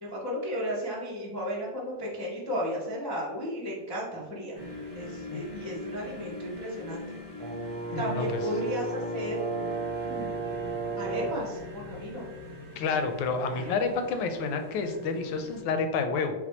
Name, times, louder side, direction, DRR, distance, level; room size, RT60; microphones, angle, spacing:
voice 1, 0.0-4.6 4.9-7.2 8.0-9.4 10.0-10.3 11.0-12.2 13.5-13.7, equal, 35° left, -8 dB, 0.3 m, -34 dB
sound 1, 4.5-15.6, left 2 dB, 15° right, 0.7 m, -42 dB
Brass instrument, 7.4-11.6, right 4 dB, 65° right, 1.1 m, -33 dB
voice 2, 7.9-8.4 12.8-16.3, left 4 dB, 80° left, 6 dB, 1.3 m, -29 dB
4.2 x 2.3 x 4.2 m, 1.1 s
omnidirectional pair, 2.1 m